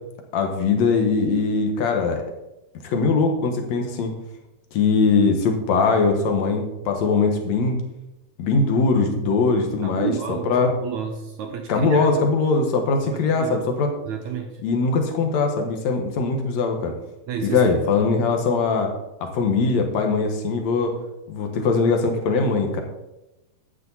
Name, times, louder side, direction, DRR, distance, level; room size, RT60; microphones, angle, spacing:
voice 1, 0.3-2.2 2.8-4.1 4.7-7.8 8.4-10.7 11.7-13.9 14.6-16.9 17.4-18.9 19.2-20.9 21.3-22.8, left 4 dB, 55° left, 4 dB, 2.3 m, -21 dB
voice 2, 9.8-12.2 13.0-13.6 14.1-14.6 17.3-17.9, right 7 dB, 75° right, 4 dB, 1.8 m, -31 dB
12.0 x 8.9 x 4.1 m, 0.95 s
omnidirectional pair, 4.2 m